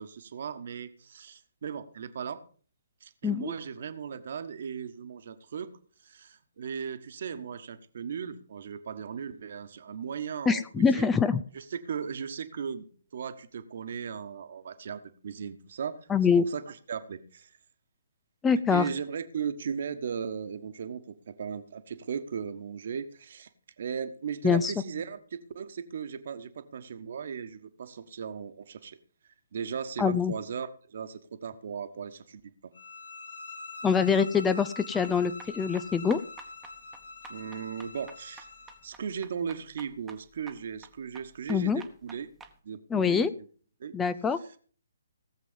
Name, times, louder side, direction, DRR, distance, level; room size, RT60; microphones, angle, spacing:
voice 1, 0.0-2.4 3.0-5.7 6.0-11.1 11.5-12.9 13.1-16.1 16.4-17.6 18.7-23.5 23.8-29.0 29.2-32.5 37.3-38.5 38.8-42.3 42.6-43.5 43.8-44.0, right 7 dB, 50° right, 11 dB, 1.3 m, -37 dB
voice 2, 10.5-11.4 16.1-16.4 18.4-18.9 24.4-24.7 30.0-30.3 33.8-36.2 41.5-41.8 42.9-43.3 43.9-44.4, left 6 dB, 10° left, 12 dB, 0.5 m, -24 dB
sound 1, 32.7-38.9, left 4 dB, 65° left, 2.2 m, -44 dB
sound 2, 35.0-42.5, right 5 dB, 10° right, 1.2 m, -51 dB
18.0 x 7.5 x 5.3 m, 0.43 s
figure-of-eight pair, 135°, 0 cm